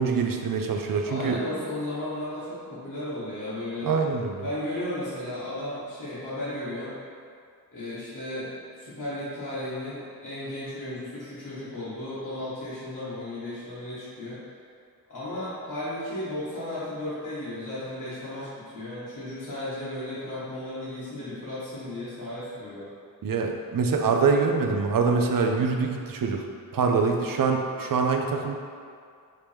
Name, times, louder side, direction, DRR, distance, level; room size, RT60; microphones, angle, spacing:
voice 1, 0.0-1.4 3.8-4.4 23.2-26.5 26.7-28.5, right 5 dB, 60° right, 3 dB, 0.5 m, -24 dB
voice 2, 1.0-3.9 4.4-6.9 7.7-8.5 8.7-14.4 15.1-22.9 26.7-27.1, left 1 dB, 55° left, -12 dB, 1.5 m, -34 dB
4.8 x 2.9 x 3.4 m, 2.2 s
wide cardioid pair, 65°, 38 cm